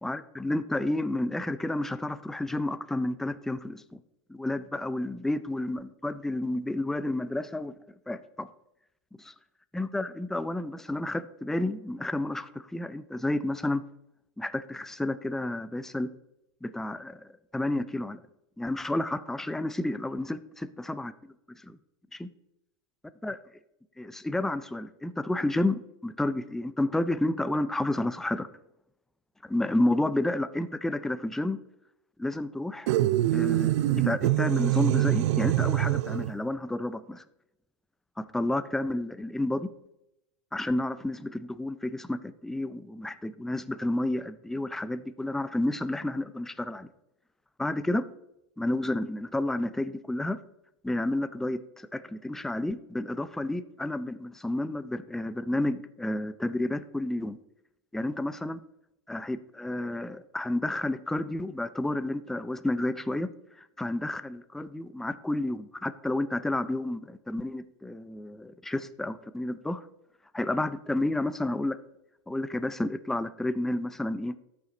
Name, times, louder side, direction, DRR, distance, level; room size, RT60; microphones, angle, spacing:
voice 1, 0.0-4.0 4.3-7.7 8.1-8.5 9.2-9.3 9.7-13.8 14.4-16.1 16.6-18.2 18.6-21.1 21.6-21.8 22.1-22.3 23.2-23.4 24.0-28.5 29.4-31.6 32.2-32.9 33.3-37.2 38.2-39.7 40.5-46.9 47.6-48.0 48.6-50.4 50.8-57.4 57.9-58.6 59.1-63.3 63.6-69.8 70.3-71.8 72.3-74.3, left 1 dB, ahead, 13 dB, 0.4 m, -30 dB
sound 1, 32.9-36.4, right 15 dB, 65° right, 0.4 m, -25 dB
13.0 x 5.9 x 3.8 m, 0.85 s
hypercardioid pair, 120°, 16 cm